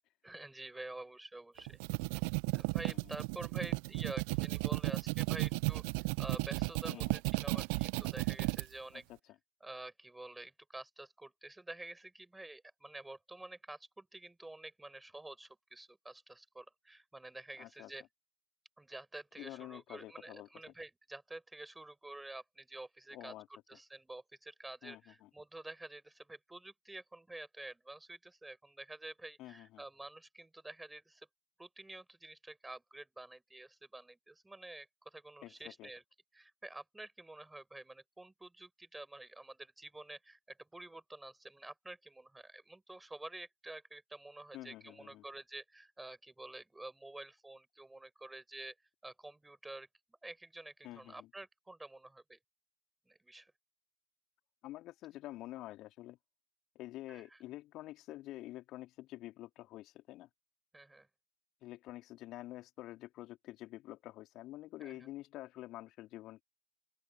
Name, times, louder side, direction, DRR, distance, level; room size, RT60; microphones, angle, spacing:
voice 1, 0.2-1.8 2.5-5.9 6.2-9.0 9.6-18.1 18.8-31.3 31.6-36.0 36.3-48.7 49.0-49.9 50.2-52.4 53.1-53.5 57.1-57.4 60.7-61.1 64.8-65.1, right 2 dB, 5° right, 7.6 m, -49 dB
sound 1, 1.6-8.6, right 35 dB, 45° right, 1.2 m, -34 dB
voice 2, 17.6-17.9 19.4-20.5 23.1-23.5 24.8-25.3 29.4-29.8 35.4-35.5 35.8-35.9 44.5-45.2 50.8-51.3 54.6-56.2 56.8-60.3 61.6-66.4, left 16 dB, 35° left, 3.9 m, -48 dB
open air
figure-of-eight pair, 90°, 0 cm